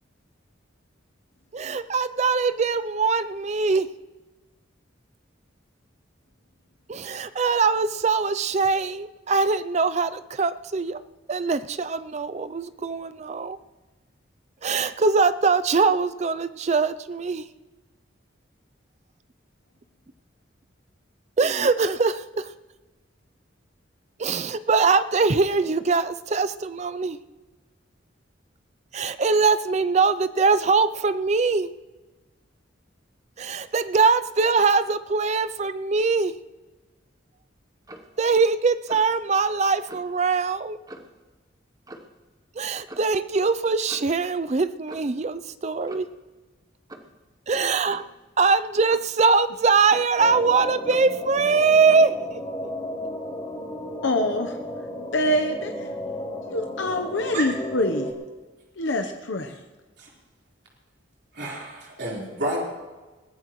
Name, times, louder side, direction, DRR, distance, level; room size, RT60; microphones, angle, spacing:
voice 1, 1.5-3.9 6.9-11.0 11.3-13.6 14.6-17.4 21.4-22.5 24.2-27.2 28.9-31.7 33.4-36.3 38.2-40.8 42.6-46.1 47.5-48.0 48.4-52.2, right 4 dB, 35° right, 0.4 m, -22 dB
Clock, 37.8-38.2 38.9-39.2 39.9-40.1 40.9-41.2 41.9-42.2 42.9-43.1 43.9-44.2 44.9-45.2 45.9-46.2 46.9-47.2 47.9-48.2 48.9-49.2 49.9-50.3 50.9-51.2 51.9-52.1, right 1 dB, 20° right, 0.9 m, -44 dB
sound 1, 50.2-58.1, left 1 dB, 20° left, 2.8 m, -34 dB
voice 2, 54.0-54.6 55.1-55.7 56.4-58.1 58.8-59.6, left 1 dB, 75° left, 0.9 m, -25 dB
voice 3, 61.3-62.7, right 1 dB, 60° right, 4.2 m, -30 dB
21.5 x 16.0 x 3.1 m
head